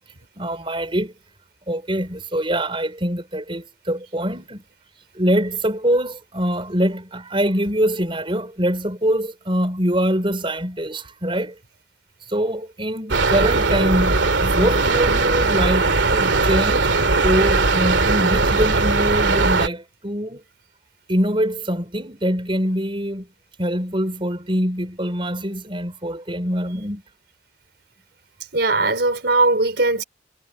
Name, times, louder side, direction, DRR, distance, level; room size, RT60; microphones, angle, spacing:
voice 1, 0.4-1.1 1.7-4.6 5.2-11.5 12.3-16.9 17.2-20.4 21.1-23.3 23.6-27.0, equal, 30° right, 5.9 m, -23 dB
sound 1, 13.1-19.7, right 3 dB, 90° right, 2.5 m, -19 dB
voice 2, 28.5-30.0, right 2 dB, 60° right, 5.2 m, -19 dB
head